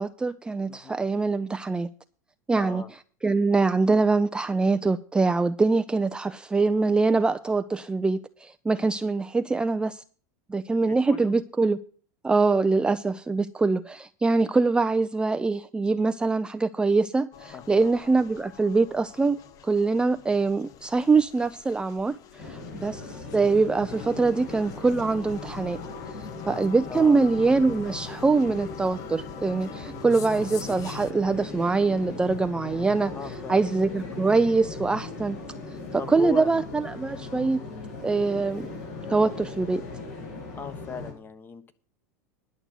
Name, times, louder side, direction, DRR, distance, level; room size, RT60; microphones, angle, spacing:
voice 1, 0.0-1.9 2.5-2.8 3.2-10.0 10.5-11.8 12.2-19.4 19.6-25.8 26.5-33.1 33.5-35.4 35.9-37.6 38.0-38.7 39.1-39.8, right 3 dB, 10° right, 0.4 m, -24 dB
voice 2, 0.7-1.0 2.5-2.9 10.7-10.8 11.1-11.3 17.5-17.9 24.2-24.4 26.9-27.2 33.1-33.7 36.0-36.5 40.5-41.7, left 5 dB, 25° left, 1.2 m, -38 dB
sound 1, 17.3-31.1, left 9 dB, 45° left, 1.0 m, -45 dB
sound 2, 22.4-41.1, left 3 dB, 70° left, 7.3 m, -38 dB
11.0 x 6.5 x 7.7 m
supercardioid pair, 110°, 9 cm